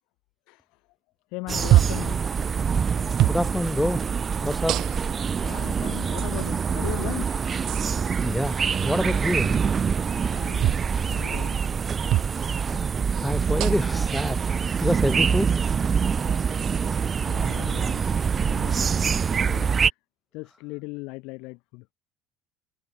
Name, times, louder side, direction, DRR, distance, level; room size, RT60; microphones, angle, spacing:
voice 1, 1.3-2.2 5.4-7.4 10.3-11.6 17.1-18.1 18.4-19.1 19.4-19.7 20.3-21.8, left 26 dB, 60° left, 3.9 m, -38 dB
sound 1, 1.5-19.9, right 6 dB, 30° right, 1.1 m, -25 dB
sound 2, 1.7-2.1 3.2-3.4 4.7-5.2 6.2-6.3 7.7-7.9 10.6-10.9 12.1-12.3 13.6-14.0 15.1-15.2 16.6-16.8, right 14 dB, 50° right, 0.3 m, -23 dB
voice 2, 3.2-4.0 4.4-4.8 8.2-9.6 13.2-15.5, left 1 dB, 5° left, 0.9 m, -27 dB
figure-of-eight pair, 65°, 0 cm